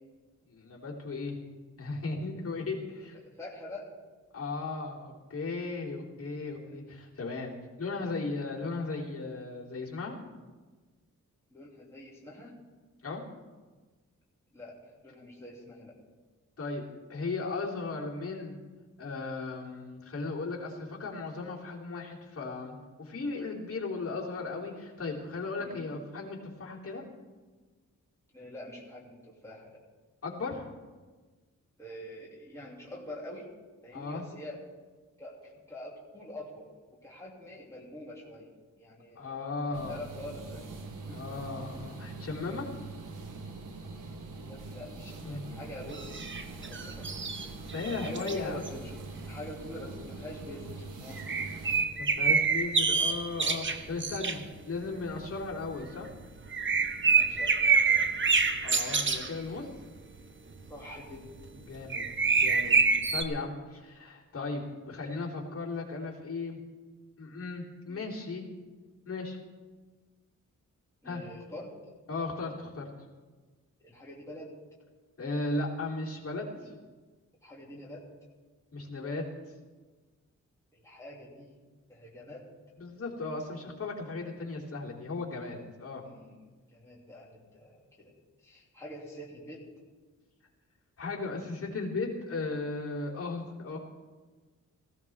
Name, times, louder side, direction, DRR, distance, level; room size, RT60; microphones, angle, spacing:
voice 1, 0.5-1.4 1.8-3.2 4.3-7.5 7.8-10.1 13.0-13.2 16.6-16.8 17.1-18.6 19.0-27.0 30.2-30.7 33.9-34.2 39.1-40.0 41.1-42.7 45.2-45.4 47.6-48.7 52.0-54.4 54.7-56.1 58.6-59.7 61.7-62.0 62.3-62.8 63.1-66.6 67.2-68.5 69.0-69.4 71.0-71.2 72.1-72.9 75.2-76.7 78.7-79.2 82.8-86.0 91.0-93.8, left 3 dB, 45° left, -4 dB, 3.3 m, -36 dB
voice 2, 3.4-3.9 6.6-6.8 11.5-12.5 14.5-16.0 25.6-25.8 28.3-29.8 31.8-33.5 33.8-34.6 35.2-36.7 37.0-38.5 38.8-39.3 39.6-40.7 41.1-41.2 44.4-47.1 48.0-51.2 57.0-58.1 60.7-61.2 67.9-68.0 71.0-71.7 73.8-74.5 76.5-76.7 77.4-78.1 80.7-81.5 81.9-82.5 86.0-86.3 86.7-88.1 88.4-89.6, left 1 dB, 10° left, -5 dB, 2.8 m, -45 dB
sound 1, 39.7-51.9, right 3 dB, 90° right, 1.4 m, -43 dB
sound 2, 45.9-48.4 48.6-49.5 50.5-50.8 51.2-54.6 54.9-59.4 60.7-60.8 61.1-61.5 61.8-63.2, right 4 dB, 40° right, 0.9 m, -27 dB
18.5 x 15.5 x 3.6 m, 1.3 s
wide cardioid pair, 135°, 31 cm